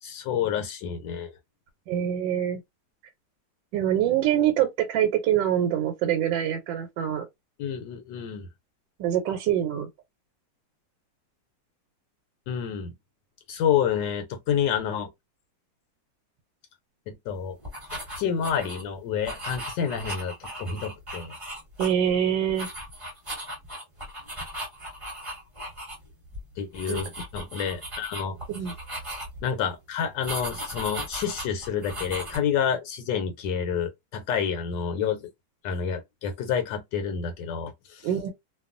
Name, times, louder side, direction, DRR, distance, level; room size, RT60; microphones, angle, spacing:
voice 1, 0.0-1.3 7.6-8.5 12.5-12.9 13.5-15.1 17.1-17.6 17.9-21.3 26.6-28.4 29.4-35.3 35.6-38.1, left 7 dB, 80° left, 1.2 m, -29 dB
voice 2, 1.9-2.6 3.7-7.2 9.0-9.9 21.8-22.7 26.9-27.0 28.5-28.7 38.0-38.3, right 10 dB, 90° right, 1.3 m, -25 dB
sound 1, 17.6-18.8 19.2-22.2 22.5-26.0 26.2-26.4 26.7-29.5 30.2-32.4, equal, 20° right, 1.1 m, -37 dB
2.8 x 2.3 x 2.4 m
omnidirectional pair, 2.0 m